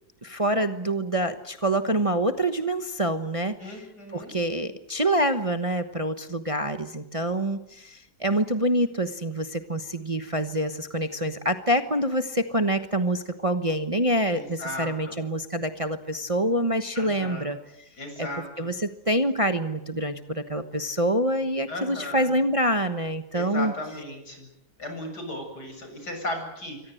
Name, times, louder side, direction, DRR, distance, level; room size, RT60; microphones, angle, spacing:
voice 1, 0.2-3.8 4.1-17.6 18.2-18.3 18.6-23.7, right 1 dB, 25° right, 8 dB, 1.1 m, -26 dB
voice 2, 3.6-4.4 14.3-15.2 16.9-17.5 18.0-18.7 21.7-22.3 23.3-24.5 24.8-26.9, left 1 dB, 75° left, 4 dB, 8.3 m, -36 dB
27.5 x 24.0 x 7.9 m, 0.84 s
omnidirectional pair, 1.8 m